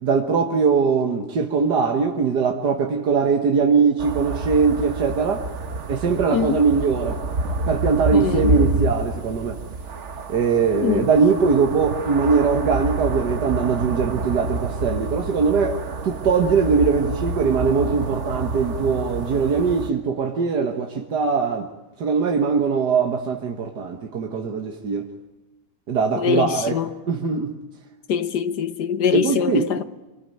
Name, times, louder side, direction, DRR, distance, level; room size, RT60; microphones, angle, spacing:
voice 1, 0.0-5.5 5.9-7.2 7.7-9.6 10.3-21.7 22.0-25.1 25.9-26.8 27.1-27.5 29.1-29.7, right 5 dB, 90° right, 2.0 m, -21 dB
sound 1, 4.0-19.9, right 2 dB, 50° right, 1.5 m, -28 dB
voice 2, 6.3-6.6 8.1-8.5 10.8-11.1 26.2-26.9 28.1-29.8, left 8 dB, 85° left, 1.7 m, -23 dB
26.0 x 22.0 x 9.3 m
omnidirectional pair, 1.7 m